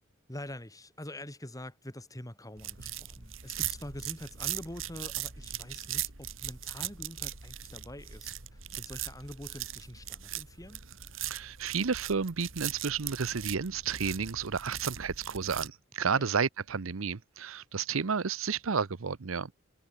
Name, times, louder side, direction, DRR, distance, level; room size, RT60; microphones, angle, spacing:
voice 1, 0.3-10.8 16.1-16.3, left 1 dB, 15° left, 3.8 m, -45 dB
sound 1, 2.6-15.7, right 12 dB, 70° right, 2.9 m, -39 dB
voice 2, 11.2-19.5, right 5 dB, 90° right, 0.8 m, -31 dB
head